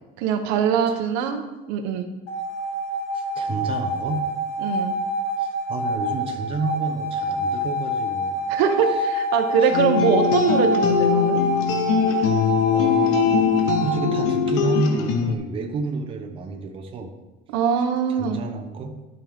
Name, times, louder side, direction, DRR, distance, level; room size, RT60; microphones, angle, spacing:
voice 1, 0.2-2.1 4.6-4.9 8.5-11.4 17.5-18.4, right 7 dB, 85° right, 6 dB, 1.0 m, -22 dB
sound 1, 2.3-13.9, right 1 dB, 85° left, 2.3 m, -26 dB
voice 2, 3.1-4.2 5.4-8.3 9.6-9.7 12.7-17.1 18.1-19.0, right 4 dB, 25° right, 3 dB, 0.8 m, -30 dB
sound 2, 9.7-15.4, left 7 dB, 65° left, 0.9 m, -21 dB
11.5 x 5.4 x 3.6 m, 1.1 s
cardioid pair, 175°, 21 cm